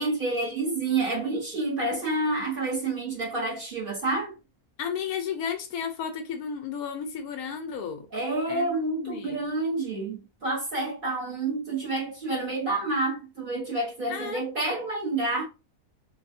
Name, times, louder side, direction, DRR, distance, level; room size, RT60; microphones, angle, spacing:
voice 1, 0.0-4.4 8.1-15.5, right 2 dB, 40° right, 1.1 m, -29 dB
voice 2, 4.8-8.1 8.5-9.4 14.1-14.4, left 7 dB, 80° left, 1.1 m, -33 dB
3.4 x 2.3 x 2.6 m
omnidirectional pair, 1.6 m